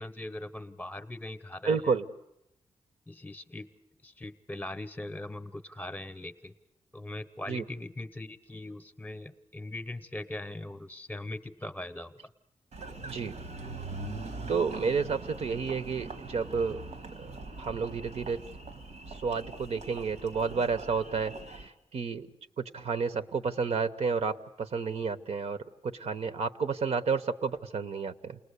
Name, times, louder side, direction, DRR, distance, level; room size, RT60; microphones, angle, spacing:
voice 1, 0.0-1.9 3.1-3.7 4.0-6.5 6.9-12.1, left 1 dB, 15° left, 11 dB, 0.9 m, -40 dB
voice 2, 1.6-2.0 7.5-7.6 13.0-13.4 14.5-16.8 17.2-17.3 17.6-18.4 19.2-21.3 21.9-22.3 22.6-28.4, right 5 dB, 70° right, 10 dB, 1.0 m, -30 dB
Engine, 12.7-21.7, right 3 dB, 85° right, 1.8 m, -42 dB
29.0 x 19.5 x 8.3 m, 0.84 s
wide cardioid pair, 110°, 11 cm